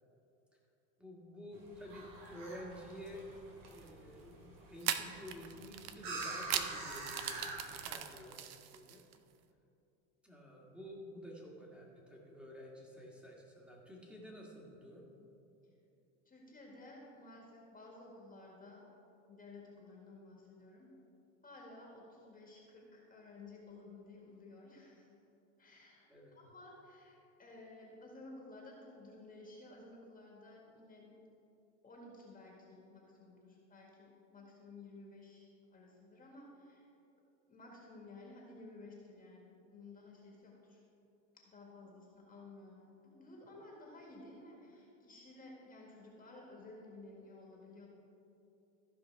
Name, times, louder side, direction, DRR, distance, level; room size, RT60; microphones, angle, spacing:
voice 1, 1.0-3.3 3.7-9.0 10.2-15.1 26.1-26.4, equal, 5° right, -2 dB, 1.8 m, -51 dB
sound 1, 1.5-7.9, right 2 dB, 85° right, 2.5 m, -47 dB
sound 2, 3.7-3.9 4.8-9.2, right 10 dB, 40° right, 0.6 m, -39 dB
voice 2, 16.3-18.9 19.3-20.9 21.4-25.1 25.6-31.1 31.8-36.9 37.5-40.8 41.3-47.9, left 2 dB, 20° left, -3 dB, 1.8 m, -54 dB
15.0 x 5.1 x 4.6 m, 2.8 s
supercardioid pair, 125°, 41 cm